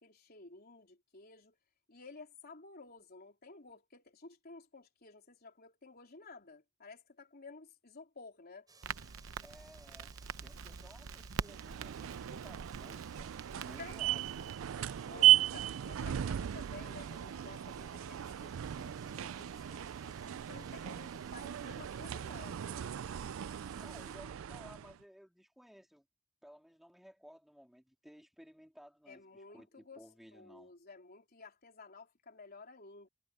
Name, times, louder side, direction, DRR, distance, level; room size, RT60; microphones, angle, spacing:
voice 1, 0.0-1.6 1.9-8.7 13.6-14.0 14.7-22.9 29.1-33.1, left 4 dB, 50° left, 3.8 m, -54 dB
sound 1, 8.7-24.2, right 4 dB, 20° right, 6.8 m, -62 dB
Crackle, 8.8-14.5, right 5 dB, 90° right, 0.7 m, -45 dB
voice 2, 9.4-10.1 10.4-14.3 23.8-26.1 26.4-30.7, equal, ahead, 3.5 m, -57 dB
sound 2, 11.4-25.0, right 12 dB, 75° right, 0.4 m, -35 dB
head